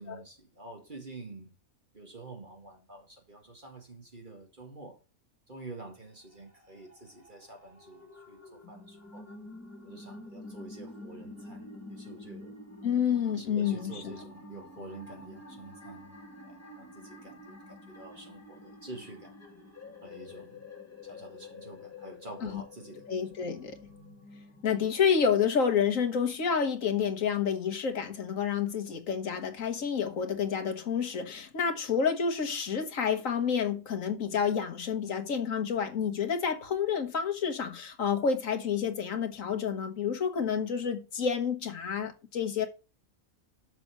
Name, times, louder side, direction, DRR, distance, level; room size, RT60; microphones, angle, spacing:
voice 1, 0.0-1.5 1.9-5.0 5.5-9.3 9.8-12.5 13.4-16.1 16.5-19.4 20.0-20.6 21.0-23.1, right 2 dB, 35° right, 2.2 m, -48 dB
sound 1, 6.2-24.6, left 2 dB, 10° left, 2.3 m, -48 dB
voice 2, 12.8-14.0 22.4-22.6 23.1-23.8 24.6-42.7, left 7 dB, 65° left, 1.7 m, -29 dB
6.9 x 6.0 x 5.4 m
omnidirectional pair, 1.5 m